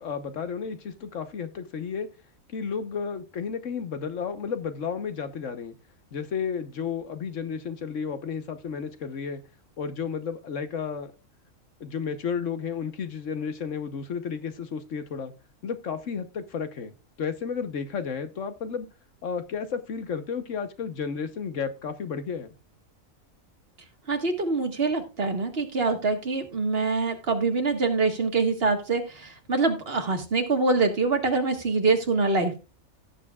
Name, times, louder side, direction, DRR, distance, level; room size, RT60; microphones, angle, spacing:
voice 1, 0.0-2.1 2.5-5.7 6.1-9.4 9.8-11.1 11.8-15.3 15.6-16.9 17.2-18.9 19.2-22.5, left 6 dB, 65° left, 9 dB, 1.4 m, -32 dB
voice 2, 24.1-32.6, right 3 dB, 45° right, 4 dB, 1.8 m, -25 dB
17.0 x 7.2 x 2.4 m, 0.30 s
omnidirectional pair, 1.5 m